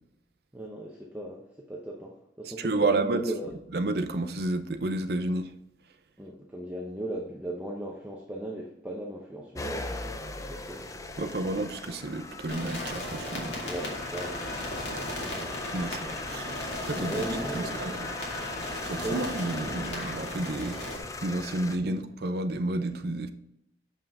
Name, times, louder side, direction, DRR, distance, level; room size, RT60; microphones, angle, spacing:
voice 1, 0.5-3.5 6.2-10.9 11.3-11.5 13.6-15.5 15.8-16.0 16.9-17.8 19.0-19.2 21.8-22.0, right 1 dB, 10° right, 0.7 m, -38 dB
voice 2, 2.6-3.2 3.7-5.5 11.2-13.6 15.7-16.5 16.8-18.1 18.7-20.8 21.2-23.3, right 2 dB, 60° right, 0.6 m, -31 dB
sound 1, 9.6-21.8, left 2 dB, 20° left, 0.4 m, -39 dB
sound 2, 12.5-21.0, left 1 dB, 80° left, 2.1 m, -37 dB
7.2 x 5.6 x 3.5 m
head